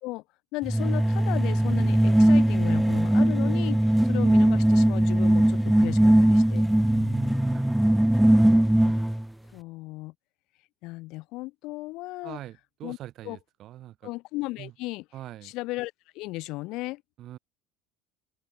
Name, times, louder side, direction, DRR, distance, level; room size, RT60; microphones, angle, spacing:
voice 1, 0.5-6.7 8.4-9.0 9.5-10.1 10.8-12.4 12.8-13.0 13.2-13.4 14.0-15.0 15.4-17.0, left 21 dB, 55° left, 3.4 m, -36 dB
sound 1, 0.7-9.2, right 1 dB, 5° right, 0.4 m, -20 dB
voice 2, 6.8-8.4 12.2-14.1 14.6-14.7 15.1-15.5 17.2-17.4, right 13 dB, 40° right, 7.3 m, -43 dB
cardioid pair, 155°, 0 cm